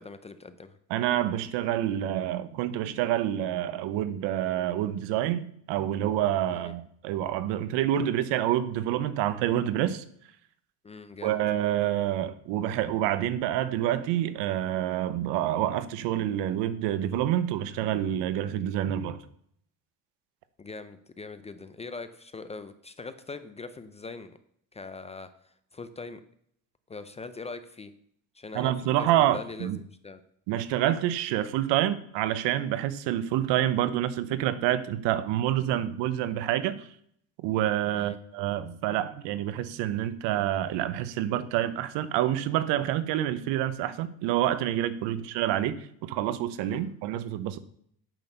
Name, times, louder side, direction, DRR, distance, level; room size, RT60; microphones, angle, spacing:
voice 1, 0.0-0.8 6.5-6.7 10.8-11.4 20.6-24.4 24.7-26.2 26.9-27.9 28.3-30.2 37.9-38.2 45.1-45.3 46.6-46.9, left 4 dB, 15° left, 11 dB, 0.4 m, -42 dB
voice 2, 0.9-10.0 11.2-19.2 28.5-29.8 30.5-36.9 37.4-47.6, right 12 dB, 80° right, 14 dB, 1.0 m, -27 dB
9.1 x 6.1 x 6.7 m, 0.66 s
cardioid pair, 145°, 42 cm